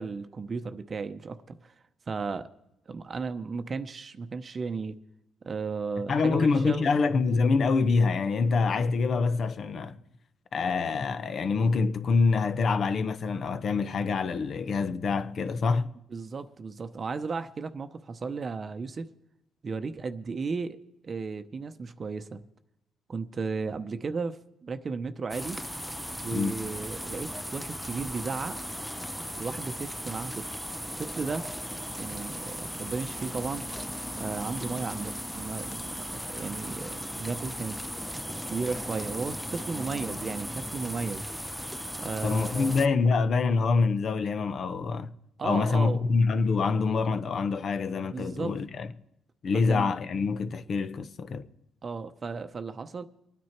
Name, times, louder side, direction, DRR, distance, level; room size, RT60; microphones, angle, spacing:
voice 1, 0.0-1.7 2.1-2.5 2.9-5.0 5.4-6.9 16.1-19.1 19.6-20.8 21.0-22.4 23.1-25.6 26.2-28.6 29.4-30.5 31.0-31.5 32.0-33.7 34.2-37.8 38.2-41.3 42.0-42.7 45.4-46.1 48.0-48.5 49.6-49.9 51.8-53.0, right 4 dB, 40° right, 0.8 m, -35 dB
voice 2, 6.1-10.0 10.5-15.9 26.3-26.6 42.2-45.1 45.4-48.9 49.4-51.5, left 4 dB, 55° left, 0.9 m, -26 dB
sound 1, 25.3-42.9, equal, ahead, 0.5 m, -37 dB
24.0 x 9.5 x 4.4 m
cardioid pair, 90°, 0 cm